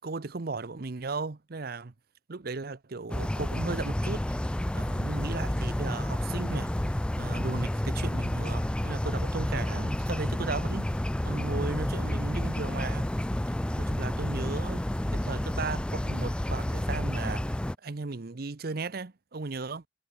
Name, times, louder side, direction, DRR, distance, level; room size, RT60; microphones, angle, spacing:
voice 1, 0.0-1.9 2.3-4.4 4.7-6.7 7.2-13.1 13.8-19.9, right 3 dB, 55° right, 0.8 m, -36 dB
sound 1, 3.1-17.7, left 1 dB, 5° left, 0.3 m, -30 dB
head